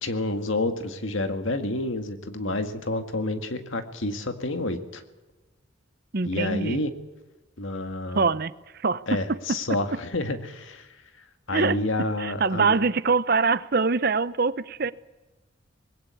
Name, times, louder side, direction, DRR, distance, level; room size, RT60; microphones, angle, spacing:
voice 1, 0.0-5.0 6.3-6.9 7.6-8.3 9.1-10.9 11.5-12.8, left 2 dB, 70° left, 2.0 m, -29 dB
voice 2, 6.1-6.8 8.1-9.6 11.5-11.8 12.2-14.9, right 4 dB, 50° right, 0.7 m, -24 dB
21.0 x 17.0 x 8.3 m
head